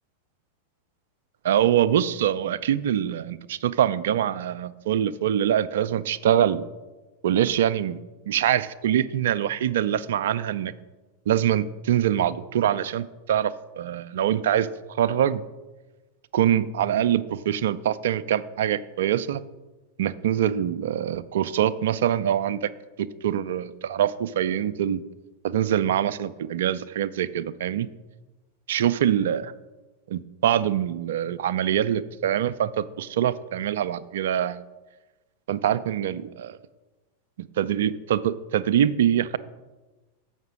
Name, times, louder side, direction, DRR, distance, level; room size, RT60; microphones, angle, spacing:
voice 1, 1.4-6.6 7.2-8.0 8.3-10.7 11.3-14.7 15.0-15.4 16.3-19.4 20.0-22.7 23.0-25.0 25.4-27.9 28.7-29.5 30.1-34.6 35.5-36.6 37.4-39.4, right 10 dB, 60° right, 16 dB, 0.3 m, -24 dB
7.3 x 5.7 x 6.1 m, 1.2 s
figure-of-eight pair, 90°, 0 cm